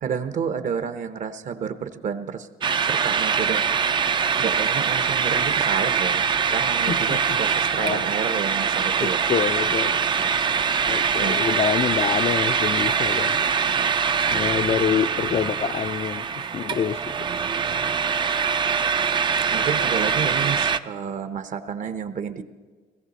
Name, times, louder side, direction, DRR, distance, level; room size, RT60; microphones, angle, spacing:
voice 1, 0.0-2.5 2.9-3.6 4.4-9.2 10.2-10.3 11.2-11.4 13.7-13.9 19.5-22.4, right 7 dB, 50° right, 11 dB, 0.9 m, -30 dB
sound 1, 2.6-20.8, right 6 dB, 30° right, 0.4 m, -23 dB
voice 2, 6.9-7.4 7.8-8.4 9.0-10.1 10.9-13.4 14.3-17.3, left 8 dB, 40° left, 12 dB, 0.4 m, -27 dB
17.5 x 15.0 x 4.1 m, 1.4 s
cardioid pair, 110°, 17 cm